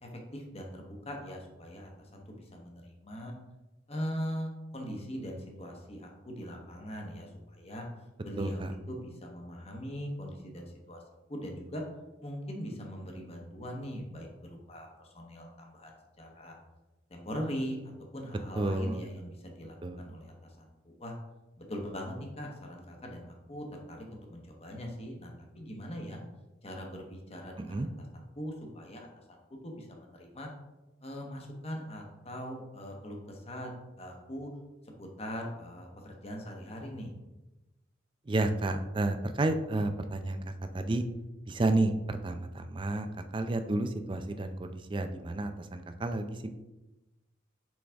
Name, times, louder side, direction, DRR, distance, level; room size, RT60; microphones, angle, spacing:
voice 1, 0.0-3.3 3.9-7.8 8.2-11.0 11.3-11.8 12.2-16.5 17.1-17.8 18.1-21.1 21.6-26.2 26.6-28.1 28.4-29.1 29.6-30.5 31.0-34.5 35.0-37.1, equal, 35° left, 1 dB, 1.0 m, -41 dB
voice 2, 8.4-8.7 18.5-19.1 19.8-20.0 27.7-27.9 38.3-40.4 40.7-41.1 41.5-43.1 43.3-46.5, right 2 dB, 25° right, 8 dB, 0.4 m, -31 dB
6.2 x 4.8 x 3.4 m, 1.0 s
head